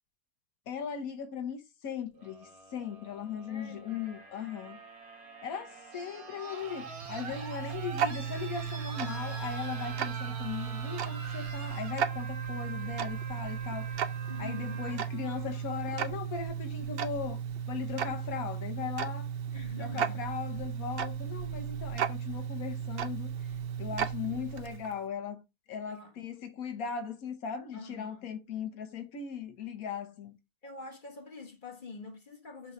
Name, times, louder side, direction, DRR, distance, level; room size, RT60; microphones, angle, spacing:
voice 1, 0.7-4.8 5.4-14.0 14.4-17.4 17.7-19.3 19.8-23.3 23.8-25.4 25.7-30.3, left 7 dB, 85° left, 1.4 m, -38 dB
sound 1, 2.1-16.1 17.4-17.5, right 4 dB, 90° right, 1.6 m, -45 dB
voice 2, 3.5-4.0 14.3-14.8 19.5-20.2 25.9-26.1 27.7-28.3 30.6-32.7, left 3 dB, 35° left, 1.5 m, -46 dB
Tick-tock, 6.7-25.0, right 8 dB, 55° right, 0.7 m, -35 dB
6.0 x 3.0 x 5.3 m
omnidirectional pair, 1.5 m